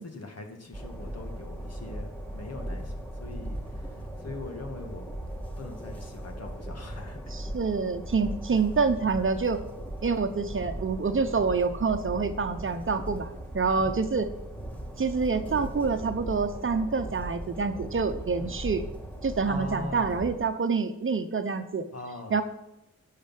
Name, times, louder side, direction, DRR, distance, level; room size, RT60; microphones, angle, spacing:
voice 1, 0.0-3.6 4.2-5.0 5.6-7.2 13.8-14.0 18.3-18.6 19.5-20.2 21.9-22.4, left 2 dB, 50° left, 4 dB, 2.2 m, -41 dB
Train, 0.7-20.4, right 1 dB, 5° left, 2.0 m, -38 dB
voice 2, 7.3-9.6 10.0-14.3 15.0-18.8 19.2-21.8 22.3-22.4, right 4 dB, 40° right, 8 dB, 1.0 m, -27 dB
10.0 x 6.7 x 7.6 m, 0.86 s
cardioid pair, 80°, 32 cm